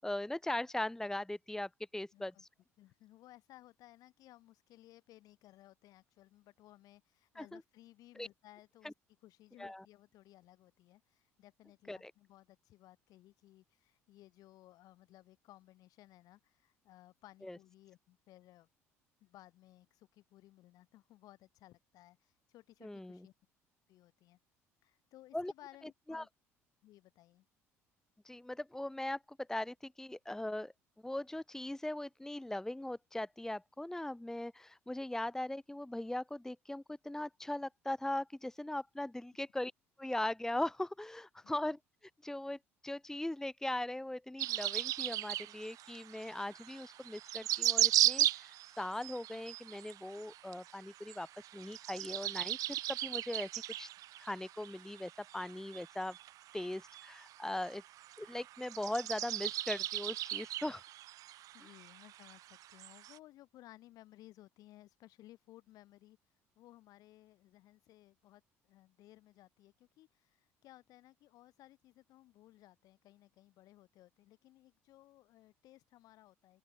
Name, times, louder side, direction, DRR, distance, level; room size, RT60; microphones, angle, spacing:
voice 1, 0.0-2.5 7.3-7.6 8.2-8.3 8.8-8.9 9.6-9.8 11.9-12.1 17.4-17.6 22.8-23.2 25.3-25.5 26.1-26.2 28.2-30.7 31.0-39.7 40.0-41.8 42.2-51.3 51.5-53.5 53.8-53.9 54.2-56.2 56.5-57.8 58.2-60.8, left 1 dB, 5° left, 1.0 m, -40 dB
voice 2, 2.1-2.4 2.8-8.9 9.2-18.7 19.2-23.3 23.9-24.4 24.8-26.3 26.8-27.4 41.4-41.6 61.5-66.2 66.6-76.6, left 15 dB, 55° left, 7.9 m, -60 dB
sound 1, 44.4-63.2, right 14 dB, 50° right, 0.7 m, -36 dB
open air
figure-of-eight pair, 55°, 7 cm